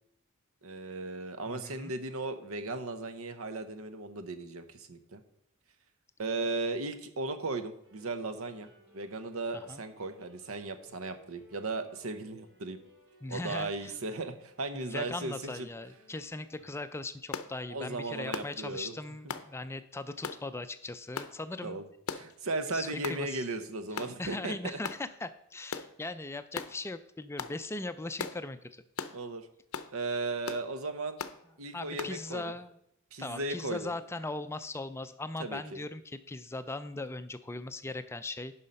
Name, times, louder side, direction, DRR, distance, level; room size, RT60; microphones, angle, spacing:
voice 1, 0.6-5.2 6.2-8.7 8.9-12.8 13.3-15.7 17.7-18.9 21.6-21.8 22.1-24.8 29.1-29.5 29.9-31.2 31.6-32.5 33.1-33.9 35.4-35.8, right 3 dB, 75° right, 9 dB, 0.9 m, -36 dB
voice 2, 1.5-1.9 9.5-9.8 13.2-13.9 14.7-21.8 22.7-23.4 23.9-28.8 31.7-32.8 33.2-38.5, left 2 dB, 10° left, 11 dB, 0.4 m, -39 dB
sound 1, 7.8-16.7, equal, 60° right, 2.6 m, -61 dB
sound 2, 17.3-17.5 18.3-18.5 19.3-19.5 20.2-20.4 21.2-21.3 22.1-22.3 23.0-23.2 24.0-24.2 24.8-25.0 25.7-25.9 26.5-26.7 27.4-27.6 28.2-28.4 29.0-29.2 29.7-29.9 30.5-30.7 31.2-31.4 32.0-32.2, left 6 dB, 90° left, 0.6 m, -37 dB
9.6 x 5.6 x 5.2 m, 0.75 s
head